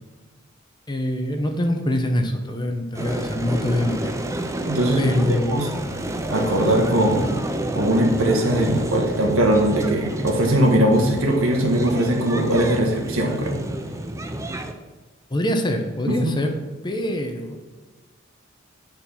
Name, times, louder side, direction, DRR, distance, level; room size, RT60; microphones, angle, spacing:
voice 1, 0.9-4.1 5.0-5.6 6.6-6.8 15.3-16.5 16.8-17.6, left 1 dB, 20° left, 5 dB, 0.8 m, -24 dB
sound 1, 2.9-14.7, right 1 dB, 15° right, 0.5 m, -29 dB
voice 2, 4.7-5.7 6.3-7.4 7.7-13.6 16.1-16.4, right 1 dB, 85° right, 1 dB, 1.7 m, -20 dB
9.2 x 4.4 x 5.7 m, 1.3 s
head